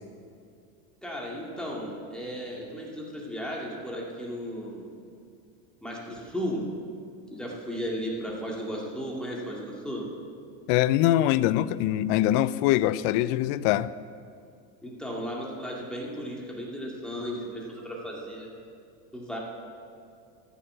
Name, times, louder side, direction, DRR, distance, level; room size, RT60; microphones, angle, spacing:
voice 1, 1.0-4.9 5.8-6.7 7.3-10.1 14.8-18.5 19.1-19.4, equal, ahead, 2.2 m, -35 dB
voice 2, 10.7-13.9, left 13 dB, 55° left, 0.5 m, -23 dB
14.0 x 6.7 x 7.8 m
supercardioid pair, 130°, 45 cm